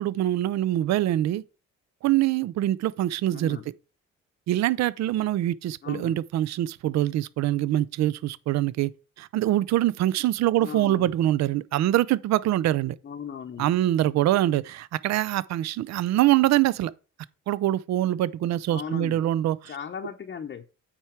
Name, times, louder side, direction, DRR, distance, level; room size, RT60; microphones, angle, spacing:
voice 1, 0.0-1.4 2.0-3.6 4.5-8.9 9.2-13.0 13.6-16.9 17.5-19.7, right 14 dB, 65° right, 0.4 m, -24 dB
voice 2, 3.3-3.7 5.8-6.2 10.6-11.1 13.0-13.7 18.7-19.2 19.7-20.6, left 7 dB, 35° left, 0.7 m, -37 dB
8.9 x 4.5 x 4.6 m
cardioid pair, 90°, 30 cm